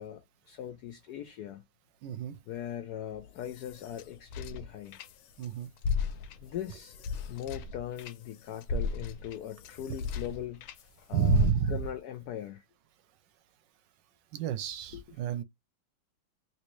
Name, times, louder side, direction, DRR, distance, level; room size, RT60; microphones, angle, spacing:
voice 1, 0.0-1.6 2.5-5.0 6.4-7.0 7.3-10.6 11.0-12.6 14.9-15.0, left 11 dB, 70° left, 1.0 m, -40 dB
voice 2, 2.0-2.4 5.4-5.7 11.1-11.8 14.3-15.4, right 9 dB, 75° right, 1.2 m, -29 dB
sound 1, 3.1-5.5 5.8-10.8 11.3-11.9, left 5 dB, 90° left, 1.4 m, -35 dB
3.1 x 2.9 x 3.0 m
omnidirectional pair, 2.1 m